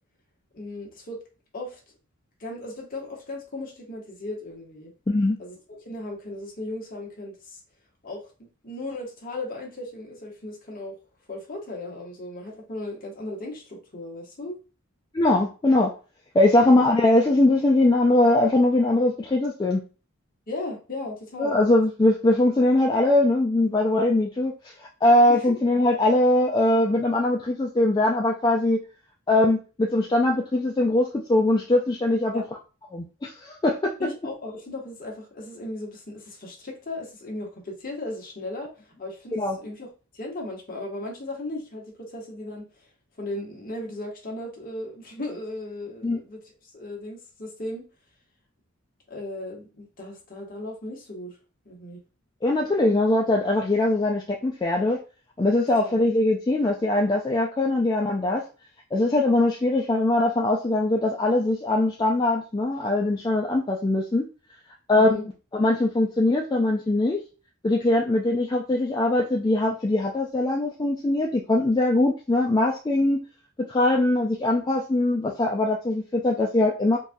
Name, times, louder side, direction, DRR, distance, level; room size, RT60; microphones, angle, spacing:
voice 1, 0.5-1.2 1.5-1.8 2.4-4.9 5.4-7.6 8.0-11.0 11.3-14.6 16.6-16.8 20.5-21.6 25.3-25.6 32.3-32.4 34.0-42.7 43.2-46.4 46.7-47.9 49.1-51.4 51.6-52.0 55.8-55.9 64.9-65.2, left 2 dB, 40° left, -1 dB, 1.1 m, -36 dB
voice 2, 5.1-5.4 15.1-15.9 16.3-19.8 21.4-24.7 25.0-28.8 29.3-32.4 32.9-34.1 39.3-39.6 46.0-46.2 52.4-55.0 55.4-58.4 58.9-64.3 64.9-67.2 67.6-73.2 73.7-77.0, left 2 dB, 20° left, -1 dB, 0.3 m, -21 dB
3.9 x 2.3 x 2.6 m, 0.34 s
head